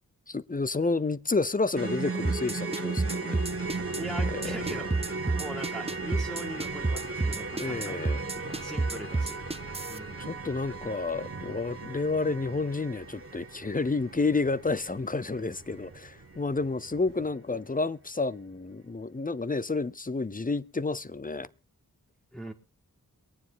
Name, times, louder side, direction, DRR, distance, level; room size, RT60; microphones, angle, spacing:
voice 1, 0.3-3.8 4.3-4.5 7.6-8.2 10.2-21.5, left 3 dB, 25° left, 0.6 m, -30 dB
sound 1, 1.8-16.0 16.2-16.4 16.8-16.9, right 3 dB, 40° right, 1.7 m, -37 dB
sound 2, 2.2-10.0, right 3 dB, 15° right, 0.7 m, -29 dB
City thunderclap, 3.4-17.3, right 4 dB, 65° right, 1.3 m, -47 dB
voice 2, 3.9-9.4 9.9-10.3 22.3-22.5, right 1 dB, ahead, 1.8 m, -41 dB
23.0 x 9.5 x 3.9 m
wide cardioid pair, 75°, 35 cm